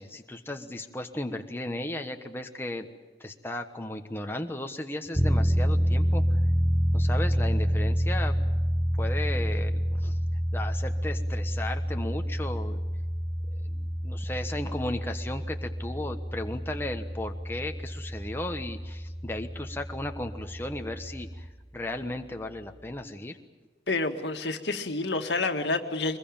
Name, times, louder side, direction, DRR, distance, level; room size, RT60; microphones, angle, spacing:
voice 1, 0.0-2.9 3.2-6.2 6.9-8.3 9.0-10.2 10.5-12.8 13.5-21.5 21.7-23.4, left 1 dB, 15° left, 4 dB, 1.2 m, -35 dB
sound 1, 5.1-21.5, equal, 5° right, 0.7 m, -28 dB
voice 2, 23.9-26.2, left 3 dB, 80° left, 5 dB, 1.9 m, -28 dB
23.5 x 21.5 x 8.9 m, 1.2 s
head